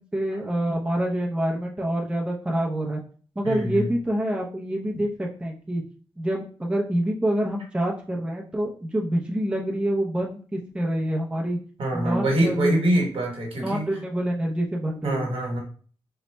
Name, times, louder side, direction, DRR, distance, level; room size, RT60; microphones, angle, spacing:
voice 1, 0.0-3.0 3.4-5.8 6.2-11.6 11.9-12.8 13.6-15.3, right 1 dB, 10° right, -1 dB, 0.6 m, -26 dB
voice 2, 3.4-3.8 11.8-13.9 15.0-15.6, right 1 dB, 75° right, 0 dB, 1.1 m, -24 dB
3.9 x 2.2 x 3.2 m, 0.42 s
wide cardioid pair, 115°, 9 cm